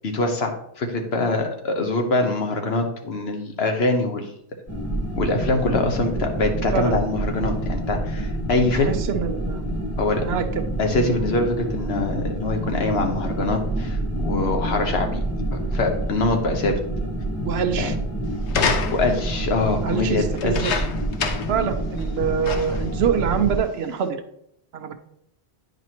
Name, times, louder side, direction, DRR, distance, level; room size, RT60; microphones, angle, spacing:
voice 1, 0.0-4.3 5.2-8.9 10.0-10.3 10.8-15.2 15.7-16.7 17.8-17.9 18.9-20.8, left 2 dB, 65° left, 4 dB, 1.2 m, -24 dB
sound 1, 4.7-23.6, right 1 dB, 15° left, 0.9 m, -27 dB
voice 2, 8.7-9.7 10.3-10.7 17.4-17.9 19.8-20.7 21.5-24.2 24.7-24.9, right 7 dB, 70° right, 8 dB, 0.9 m, -25 dB
sound 2, 18.5-19.3 20.4-21.6 22.0-22.1 22.4-22.9 23.7-23.8, left 5 dB, 85° left, 1.0 m, -27 dB
9.3 x 5.0 x 2.9 m, 0.75 s
omnidirectional pair, 1.1 m